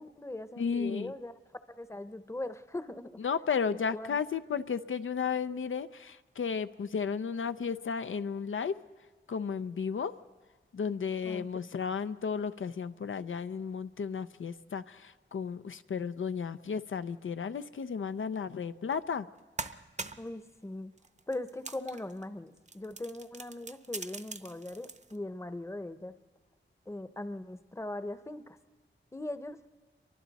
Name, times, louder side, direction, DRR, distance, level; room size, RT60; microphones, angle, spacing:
voice 1, 0.0-1.4 1.7-3.2 3.7-4.2 11.2-11.5 20.2-20.9 21.3-26.1 26.9-28.6 29.1-29.6, left 1 dB, 15° left, 11 dB, 0.8 m, -40 dB
voice 2, 0.6-1.1 3.2-8.8 9.3-10.1 10.7-19.3, left 6 dB, 80° left, 11 dB, 0.5 m, -33 dB
sound 1, 18.9-19.0 19.4-20.3 21.0-22.2 22.6-25.2, right 3 dB, 35° right, 0.8 m, -43 dB
29.5 x 23.5 x 4.1 m, 1.4 s
wide cardioid pair, 85°, 20 cm